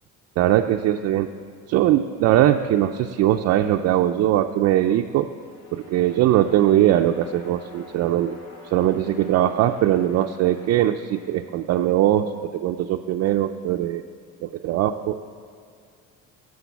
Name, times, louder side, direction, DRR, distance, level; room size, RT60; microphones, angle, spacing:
voice 1, 0.4-1.3 1.7-5.3 5.7-14.0 14.4-15.2, right 12 dB, 50° right, 4 dB, 0.5 m, -21 dB
sound 1, 5.1-12.2, left 2 dB, 80° left, 4.1 m, -47 dB
16.0 x 6.5 x 8.2 m, 2.2 s
cardioid pair, 155°, 33 cm